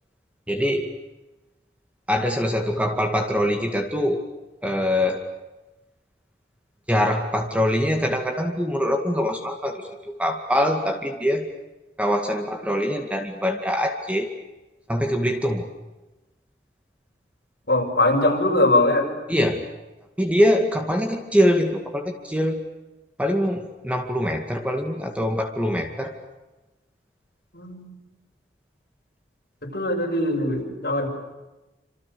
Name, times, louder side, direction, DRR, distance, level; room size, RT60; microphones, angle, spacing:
voice 1, 0.5-0.9 2.1-4.2 4.6-5.3 6.9-11.5 12.0-14.3 14.9-15.7 19.3-19.6 20.2-22.7 23.2-26.1, equal, 10° right, 4 dB, 2.2 m, -23 dB
voice 2, 17.7-19.1 27.5-28.0 29.6-31.1, left 1 dB, 65° left, 1 dB, 6.5 m, -21 dB
27.5 x 27.5 x 7.0 m, 1.1 s
head